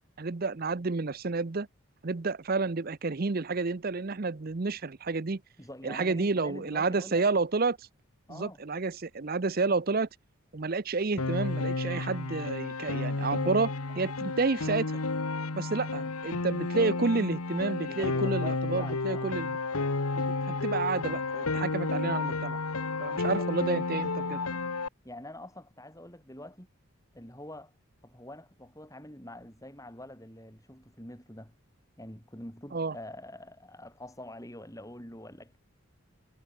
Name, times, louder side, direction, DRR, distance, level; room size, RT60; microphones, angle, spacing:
voice 1, 0.2-1.7 2.0-5.4 5.8-7.9 8.3-10.1 10.5-15.0 15.5-19.6 20.5-22.6 23.0-24.4 32.7-32.9, right 3 dB, 40° right, 0.6 m, -30 dB
voice 2, 5.6-7.2 8.3-8.6 15.9-16.2 17.9-19.2 23.3-23.5 25.0-26.7 27.1-27.7 28.0-31.5 32.0-35.6, left 1 dB, 15° left, 5.7 m, -45 dB
Piano, 11.2-24.9, left 3 dB, 90° left, 1.4 m, -31 dB
head